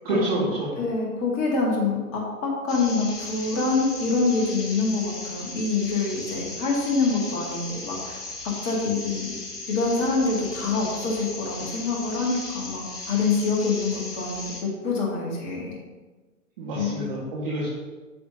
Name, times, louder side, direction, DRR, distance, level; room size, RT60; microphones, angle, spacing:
voice 1, 0.1-0.8 16.6-17.7, right 1 dB, 40° right, -6 dB, 1.7 m, -27 dB
voice 2, 0.8-8.2 8.6-9.4 9.7-15.7 16.7-17.1, left 4 dB, 25° left, -2 dB, 1.7 m, -26 dB
sound 1, 2.7-14.6, left 2 dB, 70° left, 2.3 m, -37 dB
8.5 x 6.9 x 2.8 m, 1.3 s
figure-of-eight pair, 130°, 46 cm